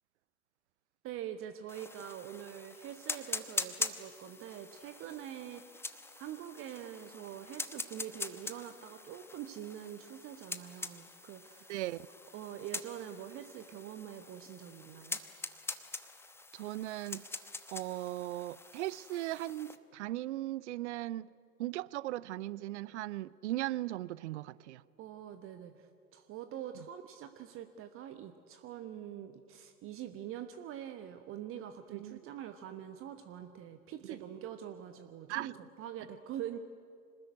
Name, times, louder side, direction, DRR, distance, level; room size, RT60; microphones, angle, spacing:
voice 1, 1.0-11.8 12.3-15.2 25.0-36.6, right 10 dB, 30° right, 1.2 m, -45 dB
sound 1, 1.7-19.8, left 3 dB, 5° left, 1.0 m, -44 dB
voice 2, 11.7-12.1 16.5-17.2 17.7-21.3 21.6-24.8 26.8-26.9 31.9-32.2 35.3-35.5, right 15 dB, 50° right, 0.7 m, -38 dB
26.0 x 19.5 x 9.6 m
figure-of-eight pair, 95°, 45 cm